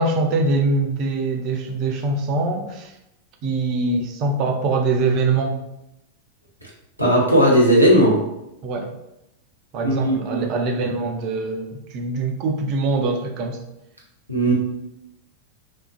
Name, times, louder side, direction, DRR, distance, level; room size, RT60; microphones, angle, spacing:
voice 1, 0.0-2.9 3.4-5.6 8.6-8.9 9.7-13.6, right 3 dB, 40° right, 3 dB, 0.4 m, -23 dB
voice 2, 7.0-8.2 9.8-10.5 14.3-14.5, equal, 90° left, -4 dB, 0.6 m, -16 dB
2.3 x 2.2 x 2.4 m, 0.85 s
figure-of-eight pair, 90°, 0 cm